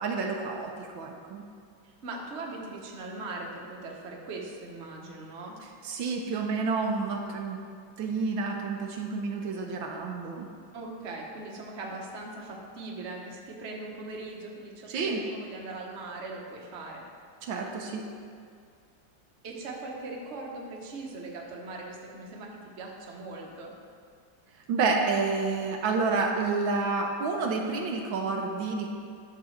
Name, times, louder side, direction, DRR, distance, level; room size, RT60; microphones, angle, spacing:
voice 1, 0.0-1.5 5.8-7.6 8.0-10.5 14.9-15.2 17.4-18.1 24.7-28.9, right 4 dB, 80° right, 2 dB, 1.5 m, -29 dB
voice 2, 2.0-5.6 10.7-17.0 19.4-23.7, right 2 dB, 40° right, -1 dB, 1.2 m, -40 dB
11.5 x 4.0 x 6.4 m, 2.2 s
omnidirectional pair, 2.1 m